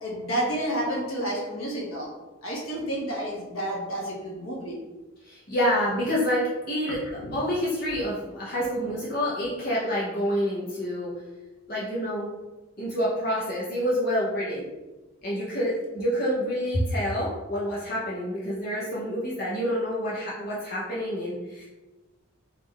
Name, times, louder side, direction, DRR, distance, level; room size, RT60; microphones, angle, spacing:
voice 1, 0.0-2.1 2.4-4.8 7.2-7.4, right 1 dB, 80° left, -3 dB, 1.1 m, -30 dB
voice 2, 5.2-11.1 11.7-12.3 12.8-14.6 15.2-21.7, equal, 45° left, -7 dB, 0.6 m, -28 dB
3.6 x 2.4 x 3.1 m, 1.2 s
head